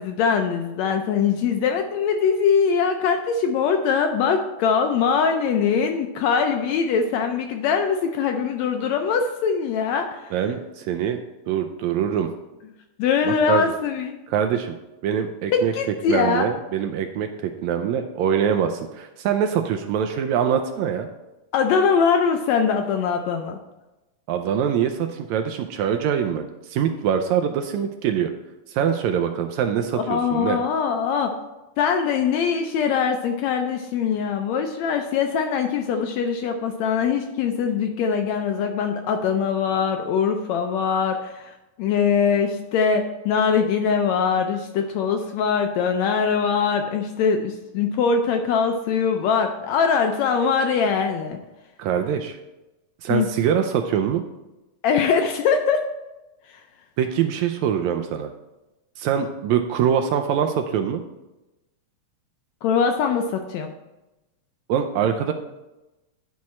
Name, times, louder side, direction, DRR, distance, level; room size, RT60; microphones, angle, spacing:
voice 1, 0.0-10.3 13.0-14.1 15.5-16.5 21.5-23.6 29.9-31.3 31.8-41.5 41.8-51.4 53.1-53.3 54.8-55.8 62.6-63.7, left 6 dB, 80° left, 5 dB, 1.6 m, -22 dB
voice 2, 10.3-11.2 11.5-12.3 13.2-13.6 14.3-14.7 15.0-15.7 16.1-21.1 24.3-28.3 28.7-30.6 51.8-52.4 53.0-54.2 57.0-58.3 59.0-61.0 64.7-65.3, right 8 dB, 80° right, 6 dB, 1.7 m, -23 dB
10.5 x 4.7 x 4.2 m, 1.0 s
omnidirectional pair, 3.6 m